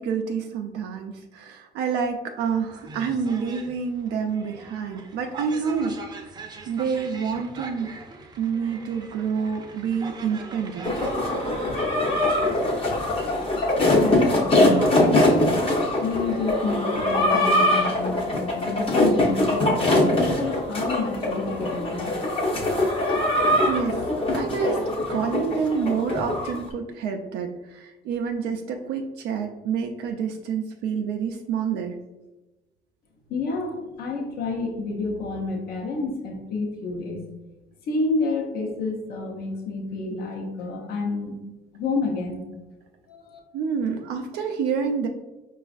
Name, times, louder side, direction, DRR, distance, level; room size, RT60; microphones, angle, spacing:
voice 1, 0.0-6.0 6.7-7.9 8.4-10.9 23.7-24.0 24.3-24.8 25.1-32.0 43.5-45.1, right 6 dB, 80° right, 3 dB, 0.4 m, -28 dB
sound 1, 2.4-16.4, right 3 dB, 25° right, 0.5 m, -41 dB
sound 2, 10.8-26.6, left 1 dB, 35° left, 0.8 m, -22 dB
voice 2, 14.0-15.5 16.0-22.1 33.3-37.2 37.9-41.4 41.7-42.5 43.1-43.4, left 3 dB, 65° left, 0 dB, 0.7 m, -29 dB
4.9 x 2.4 x 2.4 m, 1.1 s
cardioid pair, 110°, 17 cm